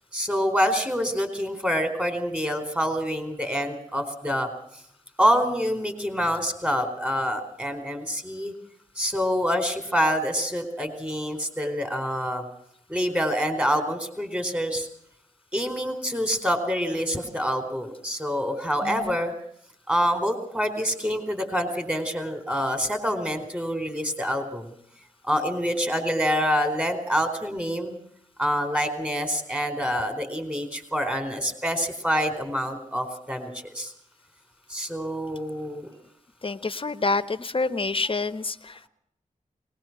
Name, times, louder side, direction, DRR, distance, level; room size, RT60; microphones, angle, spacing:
voice 1, 0.1-4.5 5.2-8.5 9.0-12.4 12.9-14.9 15.5-19.3 19.9-24.7 25.2-28.0 28.4-33.9 34.7-35.9, equal, 10° right, 8 dB, 4.4 m, -26 dB
voice 2, 18.8-19.1 36.4-38.9, left 3 dB, 40° left, 10 dB, 1.3 m, -28 dB
21.5 x 20.0 x 6.1 m, 0.69 s
wide cardioid pair, 75°, 14 cm